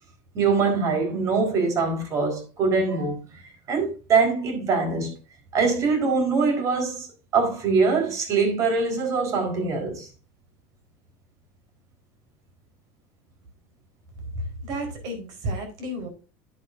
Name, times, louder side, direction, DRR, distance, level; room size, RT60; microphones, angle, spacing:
voice 1, 0.3-3.2 3.7-5.2 5.5-7.1 7.3-10.1, right 4 dB, 45° right, 4.2 m, -23 dB
voice 2, 14.3-16.1, right 1 dB, 60° right, 4.4 m, -32 dB
10.5 x 8.5 x 2.6 m
supercardioid pair, 120°, 8 cm